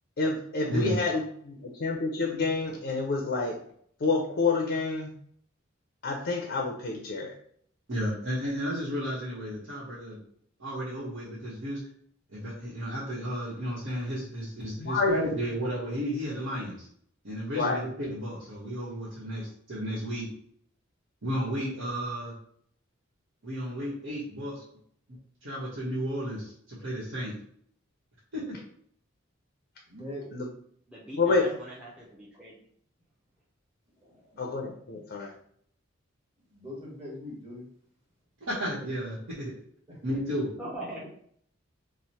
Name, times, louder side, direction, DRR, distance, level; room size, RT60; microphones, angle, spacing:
voice 1, 0.2-3.6 4.0-5.1 6.0-7.3 14.8-15.1 17.6-17.8 30.3-30.5 31.2-31.4 34.4-35.3, left 4 dB, 55° left, 2 dB, 0.5 m, -28 dB
voice 2, 7.9-10.2 10.6-11.8 12.3-16.9 17.2-20.3 21.2-22.3 23.4-24.6 25.4-27.3 28.3-28.6 38.5-39.5 40.0-40.5, equal, 85° right, -9 dB, 1.0 m, -33 dB
voice 3, 29.9-30.2 34.0-34.5 36.5-37.7 39.9-40.0, left 1 dB, 35° right, -3 dB, 1.1 m, -42 dB
voice 4, 30.9-32.6 40.6-41.1, right 1 dB, 5° right, -6 dB, 0.5 m, -41 dB
3.0 x 2.1 x 4.1 m, 0.63 s
head